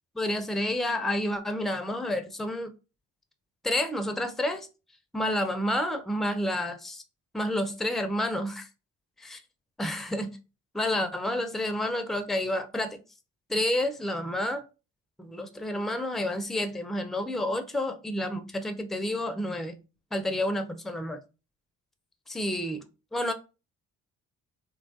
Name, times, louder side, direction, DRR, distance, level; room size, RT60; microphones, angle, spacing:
voice 1, 0.1-2.7 3.6-4.7 5.1-7.0 7.3-8.7 9.2-9.4 9.8-10.3 10.7-13.0 13.5-14.6 15.2-19.8 20.1-21.2 22.3-22.8 23.1-23.3, left 1 dB, ahead, 0.4 m, -29 dB
3.0 x 2.3 x 2.6 m
hypercardioid pair, 50°, 36 cm